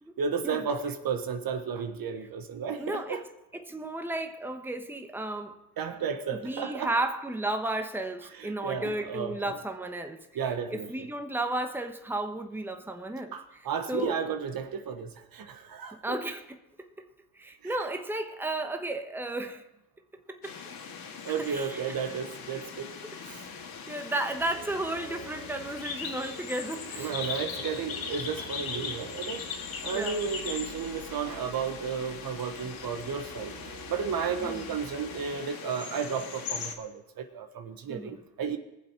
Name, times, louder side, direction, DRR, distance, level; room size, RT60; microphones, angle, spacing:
voice 1, 0.2-3.2 5.8-6.9 8.3-9.5 10.3-10.9 13.3-16.2 17.6-17.7 21.2-22.9 23.2-23.5 27.0-33.5 33.9-38.6, right 6 dB, 55° right, 1.3 m, -33 dB
voice 2, 2.8-3.2 3.5-5.5 6.3-10.3 10.7-13.3 13.9-14.2 15.9-17.1 17.4-19.6 20.3-20.6 21.5-21.8 23.9-27.1 29.8-30.2 34.4-34.6 37.9-38.2, right 1 dB, 5° right, 1.1 m, -33 dB
sound 1, 20.4-36.7, left 6 dB, 55° left, 2.1 m, -40 dB
sound 2, 24.3-35.3, right 4 dB, 80° right, 2.3 m, -49 dB
20.0 x 7.5 x 4.6 m
supercardioid pair, 65°, 42 cm